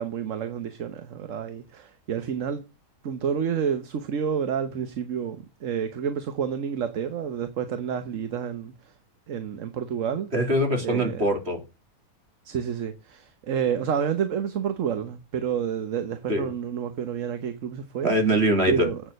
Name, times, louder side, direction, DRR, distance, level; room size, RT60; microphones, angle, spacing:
voice 1, 0.0-2.6 3.0-8.7 9.3-10.3 10.8-11.3 12.4-18.1 18.7-19.0, right 7 dB, 60° right, 1.3 m, -29 dB
voice 2, 10.3-11.6 16.3-16.5 18.0-18.9, right 1 dB, 45° right, 3.2 m, -23 dB
8.7 x 6.7 x 6.4 m
omnidirectional pair, 1.6 m